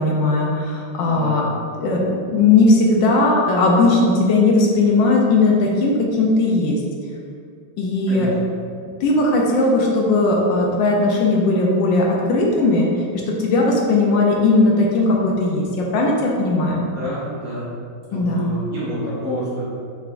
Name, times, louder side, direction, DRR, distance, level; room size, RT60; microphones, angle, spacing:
voice 1, 0.0-1.4 1.8-6.8 7.8-8.3 9.0-12.9 13.1-16.8 18.1-18.5, left 2 dB, 75° left, -2 dB, 1.2 m, -17 dB
voice 2, 1.1-1.5 8.1-8.3 16.8-17.7 18.1-19.6, equal, 40° right, -8 dB, 1.1 m, -28 dB
5.6 x 3.5 x 2.5 m, 2.3 s
omnidirectional pair, 2.3 m